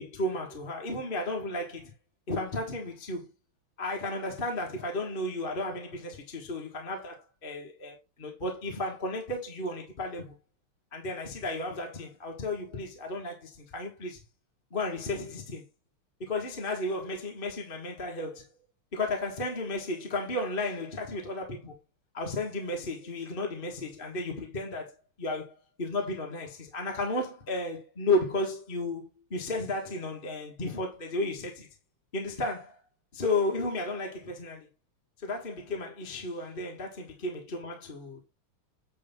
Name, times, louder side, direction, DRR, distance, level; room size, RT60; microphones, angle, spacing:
voice 1, 0.0-1.9 2.3-3.3 3.8-10.3 10.9-14.2 14.7-15.6 16.2-18.5 18.9-21.7 22.1-25.5 25.8-31.7 32.1-32.8 33.1-34.7 35.2-38.2, left 2 dB, 30° left, 1.4 m, -33 dB
9.0 x 3.5 x 5.7 m
omnidirectional pair, 2.4 m